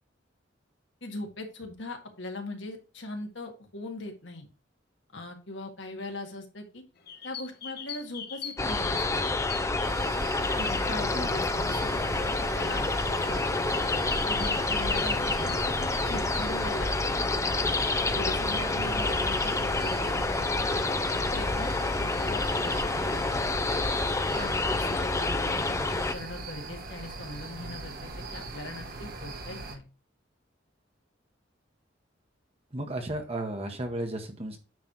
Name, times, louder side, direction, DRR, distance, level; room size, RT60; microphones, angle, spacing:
voice 1, 1.0-4.5 5.1-6.8 7.2-9.3 10.6-13.8 14.3-17.2 18.1-20.3 21.1-23.6 24.4-29.8, left 2 dB, 75° left, 3 dB, 1.9 m, -40 dB
sound 1, 7.0-11.0 11.5-11.7 12.7-12.8 13.3-13.5 13.8-16.0, left 7 dB, 55° left, 1.2 m, -41 dB
sound 2, 8.6-26.1, left 3 dB, 15° left, 0.5 m, -28 dB
sound 3, 9.8-29.8, right 2 dB, 50° right, 1.5 m, -39 dB
voice 2, 32.7-34.6, right 1 dB, 35° right, 4 dB, 1.2 m, -34 dB
9.3 x 3.3 x 6.0 m, 0.32 s
head